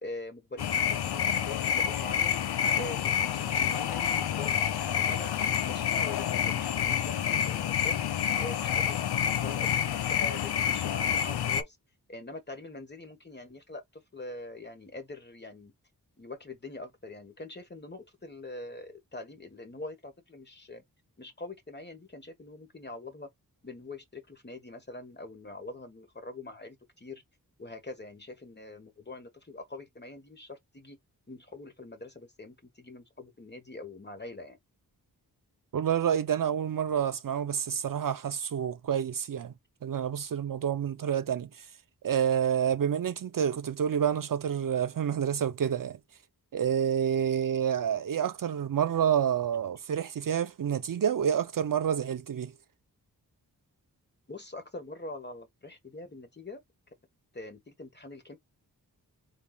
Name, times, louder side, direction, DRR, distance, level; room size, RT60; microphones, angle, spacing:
voice 1, 0.0-2.4 2.7-5.3 5.6-8.0 8.4-9.0 9.4-11.8 12.1-13.8 14.1-15.7 16.2-20.8 21.2-23.3 23.6-27.2 27.6-31.0 31.3-34.6 54.3-56.6 57.3-58.4, left 2 dB, 25° left, 1.3 m, -44 dB
sound 1, 0.6-11.6, left 9 dB, 75° left, 0.6 m, -28 dB
voice 2, 35.7-39.5 39.8-41.7 42.0-46.0 46.5-52.5, right 8 dB, 55° right, 0.5 m, -28 dB
4.1 x 3.6 x 2.3 m
cardioid pair, 45°, 38 cm